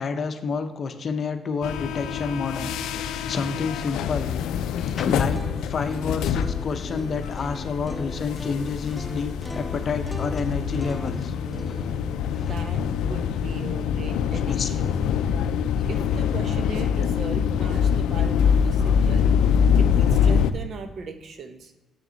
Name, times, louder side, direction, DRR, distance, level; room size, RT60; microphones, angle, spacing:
voice 1, 0.0-4.3 4.6-11.3 11.7-11.8 12.3-12.6 13.7-13.8 14.5-14.7 15.8-15.9, left 5 dB, 50° left, 8 dB, 0.7 m, -30 dB
sound 1, 1.6-20.5, left 7 dB, 85° left, 0.4 m, -24 dB
sound 2, 5.2-15.1, left 1 dB, 5° left, 0.5 m, -40 dB
voice 2, 12.5-15.1 15.9-19.3 19.7-21.7, right 4 dB, 60° right, 7 dB, 0.8 m, -38 dB
7.2 x 6.6 x 3.9 m, 1.1 s
cardioid pair, 90°, 0 cm